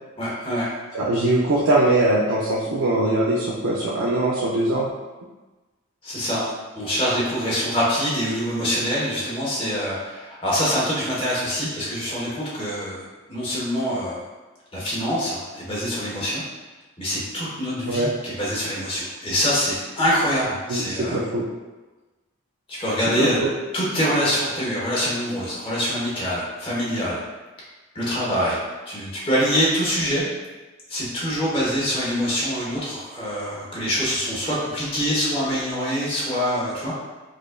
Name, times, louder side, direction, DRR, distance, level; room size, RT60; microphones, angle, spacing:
voice 1, 0.2-0.7 6.0-6.4 6.7-13.0 13.3-14.2 14.7-16.4 17.0-21.2 22.8-23.4 23.7-27.2 27.9-30.2 30.9-36.9, equal, 25° left, -7 dB, 1.1 m, -25 dB
voice 2, 0.9-4.9 17.9-18.1 20.7-21.5 23.2-23.5, right 2 dB, 80° right, -5 dB, 0.5 m, -21 dB
4.8 x 2.5 x 2.3 m, 1.2 s
head